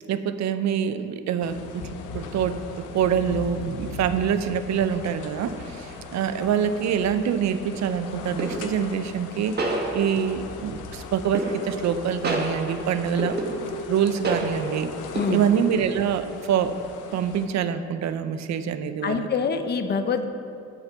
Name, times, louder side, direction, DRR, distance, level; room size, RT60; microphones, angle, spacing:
voice 1, 0.1-1.9 2.1-2.6 2.9-13.4 13.9-14.9 15.3-16.7 17.1-19.3, right 8 dB, 65° right, 11 dB, 0.5 m, -25 dB
sound 1, 1.4-17.5, left 4 dB, 85° left, 0.7 m, -40 dB
sound 2, 6.8-7.1 8.4-8.9 9.6-10.5 11.3-11.9 12.2-13.9 14.2-14.8 15.2-15.7, right 2 dB, 35° right, 1.4 m, -29 dB
voice 2, 19.0-20.3, left 5 dB, 35° left, 8 dB, 0.6 m, -25 dB
8.5 x 4.4 x 6.7 m, 2.5 s
cardioid pair, 90°, 30 cm